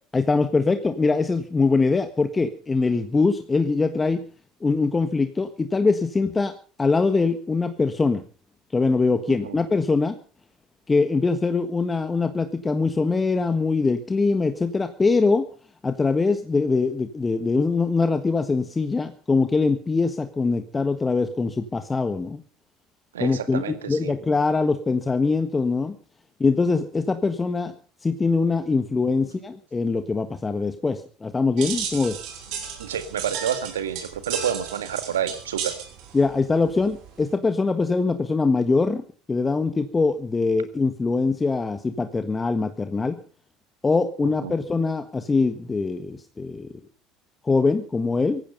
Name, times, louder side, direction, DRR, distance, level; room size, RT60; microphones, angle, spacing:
voice 1, 0.1-4.2 4.6-6.5 6.8-8.2 8.7-10.2 10.9-15.5 15.8-22.4 23.2-26.0 26.4-27.7 28.0-32.2 36.1-43.2 43.8-46.7 47.4-48.4, left 4 dB, 20° left, 9 dB, 1.5 m, -23 dB
voice 2, 23.1-24.1 32.8-35.8 44.2-44.5, right 9 dB, 85° right, 10 dB, 1.9 m, -29 dB
sound 1, 31.6-37.3, right 8 dB, 65° right, 5.8 m, -34 dB
18.0 x 15.0 x 5.4 m, 0.41 s
hypercardioid pair, 70°, 0 cm